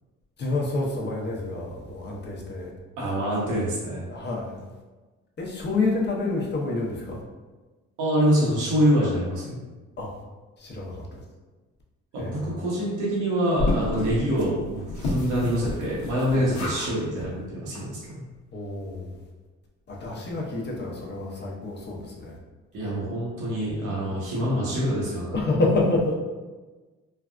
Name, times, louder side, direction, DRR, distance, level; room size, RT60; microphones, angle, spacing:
voice 1, 0.4-2.7 4.1-4.6 5.4-7.2 10.0-10.1 10.6-11.2 12.2-12.5 13.9-14.0 16.3-16.4 18.5-19.1 19.9-22.4 24.1-24.2 25.3-26.1, left 2 dB, 35° left, -2 dB, 0.8 m, -28 dB
voice 2, 3.0-4.0 8.0-9.6 12.1-18.3 22.7-25.4, equal, 85° right, -6 dB, 1.0 m, -25 dB
sound 1, 13.6-16.9 17.2-17.3 17.7-17.8 18.1-18.2, left 2 dB, 75° left, 0.9 m, -30 dB
3.3 x 2.3 x 2.4 m, 1.2 s
cardioid pair, 90°, 30 cm